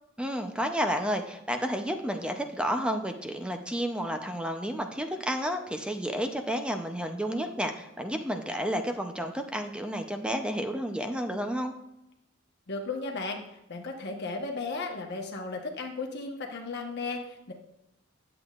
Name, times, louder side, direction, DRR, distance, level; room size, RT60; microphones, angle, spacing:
voice 1, 0.2-11.7, equal, 5° right, 5 dB, 0.6 m, -31 dB
voice 2, 12.7-13.4 13.7-17.5, left 3 dB, 55° left, 2 dB, 1.1 m, -35 dB
11.0 x 7.8 x 2.4 m, 0.86 s
head